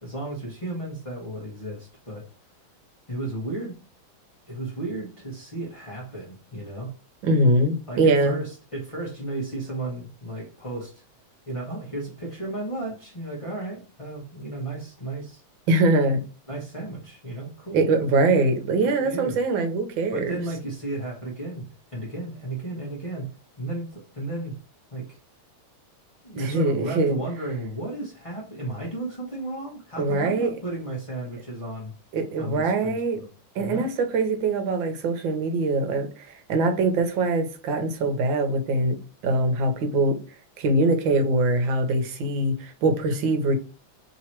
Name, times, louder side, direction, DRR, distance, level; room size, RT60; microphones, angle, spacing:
voice 1, 0.0-2.3 3.1-3.7 4.5-6.9 7.9-11.0 11.5-15.4 16.5-17.8 18.8-19.4 20.1-23.3 23.6-24.5 24.9-25.2 26.2-31.9 32.4-33.3 33.6-33.9, right 2 dB, 25° left, 0.7 m, -34 dB
voice 2, 7.2-8.4 15.7-16.2 17.7-20.4 26.4-27.2 30.0-30.5 32.1-33.2 33.5-39.0 39.2-40.2 40.6-43.6, right 2 dB, 70° right, 1.6 m, -23 dB
3.7 x 2.9 x 4.3 m
omnidirectional pair, 2.2 m